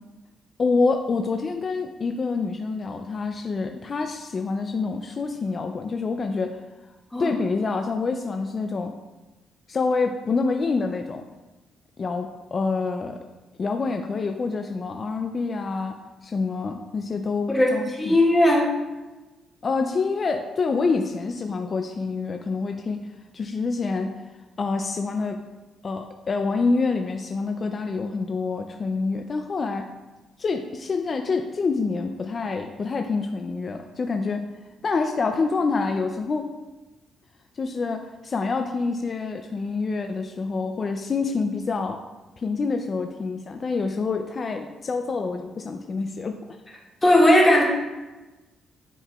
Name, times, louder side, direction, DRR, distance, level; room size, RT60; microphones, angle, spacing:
voice 1, 0.6-6.6 7.2-8.9 9.7-11.2 12.0-13.2 13.6-16.0 16.2-18.2 19.6-23.1 23.3-24.2 24.6-25.4 25.8-29.9 30.4-34.4 34.8-36.5 37.6-42.0 42.4-46.4, left 4 dB, 40° left, 5 dB, 0.4 m, -27 dB
voice 2, 17.5-18.7 47.0-47.6, left 1 dB, 15° left, -3 dB, 1.9 m, -18 dB
9.8 x 4.6 x 2.4 m, 1.1 s
cardioid pair, 90°, 0 cm